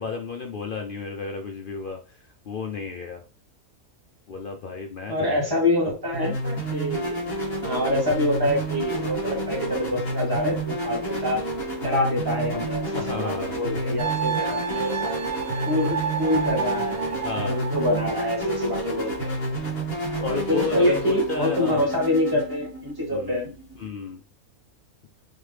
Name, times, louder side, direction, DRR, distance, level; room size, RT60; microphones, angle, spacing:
voice 1, 0.0-3.2 4.3-5.5 12.9-13.6 14.4-14.5 17.2-17.6 20.2-21.9 23.1-23.5 23.8-24.2, left 4 dB, 60° left, 3 dB, 0.5 m, -32 dB
voice 2, 5.1-7.2 7.6-11.5 11.8-15.2 15.7-19.3 20.5-23.5, left 1 dB, 15° right, -3 dB, 1.8 m, -26 dB
sound 1, 6.1-23.9, right 1 dB, 45° left, 1.8 m, -30 dB
sound 2, 14.0-19.4, right 6 dB, 80° right, 1.0 m, -31 dB
3.6 x 3.6 x 3.3 m, 0.33 s
omnidirectional pair, 1.5 m